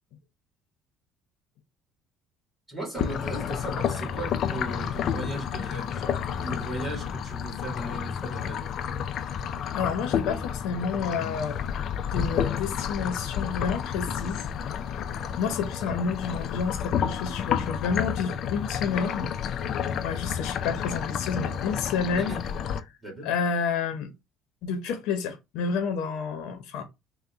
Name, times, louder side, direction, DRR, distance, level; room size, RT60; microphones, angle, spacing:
voice 1, 2.7-8.7 22.1-22.5 23.0-23.3, right 1 dB, 10° right, 2.0 m, -37 dB
sound 1, 3.0-22.8, left 8 dB, 45° left, 0.3 m, -30 dB
voice 2, 9.7-11.6 12.1-14.4 14.8-14.9 15.4-19.3 20.0-22.3 23.2-24.1 24.6-26.8, left 5 dB, 70° left, 0.7 m, -30 dB
3.9 x 2.1 x 3.5 m
cardioid pair, 150°, 0 cm